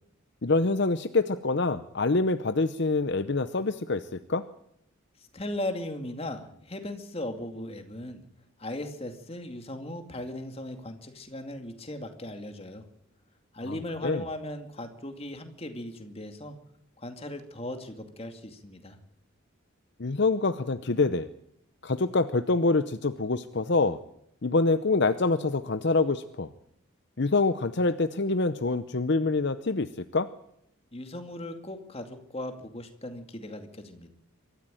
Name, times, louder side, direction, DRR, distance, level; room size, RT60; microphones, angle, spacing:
voice 1, 0.4-4.4 13.7-13.8 14.0-14.2 20.0-21.3 21.8-24.0 24.4-26.5 27.2-30.3, left 3 dB, 55° left, 11 dB, 0.7 m, -26 dB
voice 2, 5.2-8.2 8.6-12.9 13.5-16.6 17.0-19.0 30.9-34.1, left 1 dB, 30° left, 6 dB, 2.3 m, -38 dB
24.0 x 14.0 x 9.1 m, 0.76 s
head